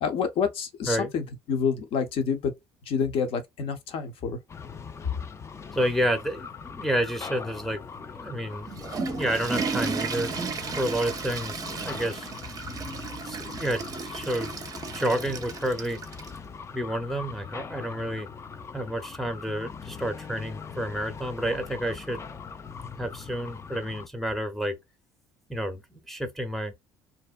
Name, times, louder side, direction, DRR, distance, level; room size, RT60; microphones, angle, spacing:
voice 1, 0.0-2.5 2.9-4.4, left 6 dB, 60° left, 0.7 m, -28 dB
sound 1, 4.5-24.1, left 6 dB, 25° left, 0.3 m, -41 dB
voice 2, 5.7-10.3 10.8-12.3 13.1-14.5 14.9-16.0 16.7-18.3 18.7-22.2 23.0-24.8 25.5-26.7, equal, ahead, 0.7 m, -30 dB
Water / Toilet flush, 8.5-16.4, right 4 dB, 35° right, 0.5 m, -34 dB
2.6 x 2.0 x 2.4 m
supercardioid pair, 80°, 11 cm